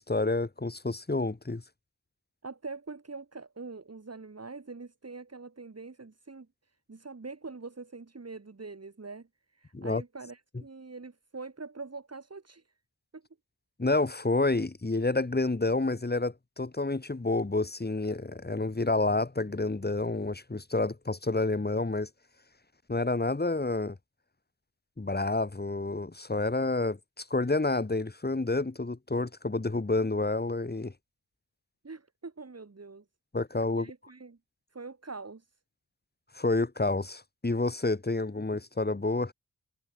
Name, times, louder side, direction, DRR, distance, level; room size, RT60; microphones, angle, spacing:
voice 1, 0.0-1.6 9.7-10.0 13.8-22.1 22.9-23.9 25.0-30.9 33.3-33.9 36.3-39.3, left 2 dB, 25° left, 3.1 m, -29 dB
voice 2, 2.4-6.5 6.9-9.3 9.5-12.6 13.1-13.2 31.8-33.1 33.7-34.4 34.7-35.5, right 3 dB, 40° right, 7.0 m, -44 dB
cardioid pair, 70°, 38 cm